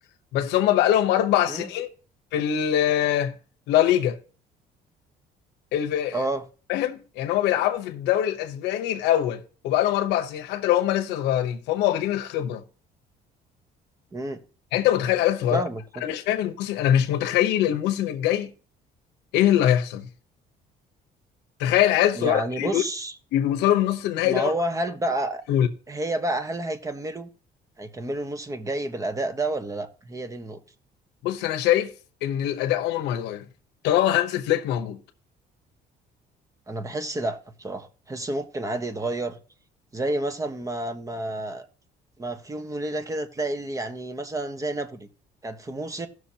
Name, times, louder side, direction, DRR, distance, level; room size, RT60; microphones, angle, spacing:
voice 1, 0.3-1.9 2.3-3.3 3.7-4.2 5.7-6.3 6.7-12.6 14.7-15.6 16.0-18.5 19.3-20.1 21.6-22.8 23.3-24.5 25.5-25.7 31.2-31.9 32.2-33.4 33.8-35.0, left 11 dB, 85° left, 0.9 m, -23 dB
voice 2, 6.1-6.4 14.1-14.4 15.5-16.0 22.2-23.1 24.2-25.4 25.9-27.3 27.8-30.6 36.7-39.4 39.9-41.7 42.2-45.1 45.4-46.1, right 1 dB, 20° right, 1.1 m, -30 dB
17.0 x 6.3 x 2.8 m
cardioid pair, 110°, 17 cm